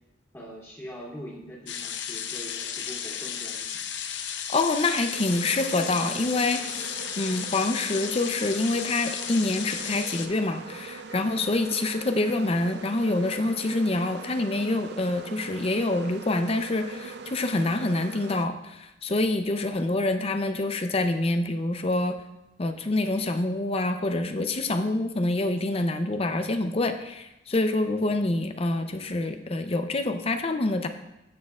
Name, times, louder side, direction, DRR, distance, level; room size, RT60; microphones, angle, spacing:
voice 1, 0.3-3.7 19.5-19.9, equal, 15° left, -7 dB, 2.4 m, -43 dB
sound 1, 1.7-10.3, left 8 dB, 75° left, 0.6 m, -34 dB
voice 2, 4.5-22.2 22.6-30.9, left 2 dB, 35° left, 7 dB, 0.6 m, -26 dB
sound 2, 5.1-18.5, right 4 dB, 60° right, 0.4 m, -42 dB
15.0 x 6.5 x 2.4 m, 0.88 s
head